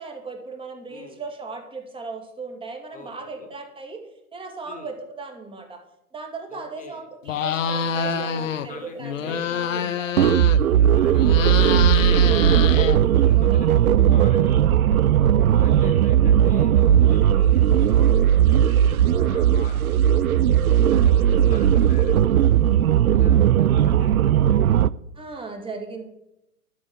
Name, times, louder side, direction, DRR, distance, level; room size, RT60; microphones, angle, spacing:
voice 1, 0.0-4.0 4.3-5.8 6.1-10.3 13.4-13.6 14.0-14.4 15.2-15.6 19.1-19.5 21.0-21.6 22.5-23.3 25.2-26.0, right 4 dB, 10° right, 4 dB, 2.1 m, -38 dB
voice 2, 0.9-1.2 2.9-3.5 4.6-4.9 6.5-7.1 8.1-9.5 10.2-15.0 15.5-20.5 20.9-22.6 23.1-24.9, left 3 dB, 15° left, 6 dB, 2.1 m, -44 dB
sound 1, 7.2-8.7 9.0-10.8 11.1-13.4, left 7 dB, 55° left, 1.2 m, -26 dB
sound 2, 10.2-24.9, right 10 dB, 70° right, 0.6 m, -17 dB
12.0 x 6.4 x 9.0 m, 0.84 s
figure-of-eight pair, 105°, 45 cm